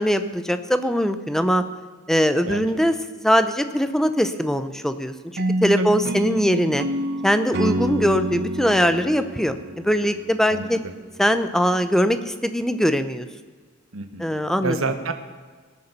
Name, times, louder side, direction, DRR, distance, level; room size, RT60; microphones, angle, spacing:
voice 1, 0.0-1.6 2.1-6.9 7.2-10.8 11.2-13.3 14.2-14.8, equal, ahead, 10 dB, 0.6 m, -21 dB
sound 1, 5.4-10.5, right 1 dB, 50° right, 0.7 m, -27 dB
voice 2, 10.5-10.9 13.9-14.3 14.6-15.1, right 3 dB, 90° right, 8 dB, 1.2 m, -28 dB
18.5 x 6.9 x 6.7 m, 1.5 s
head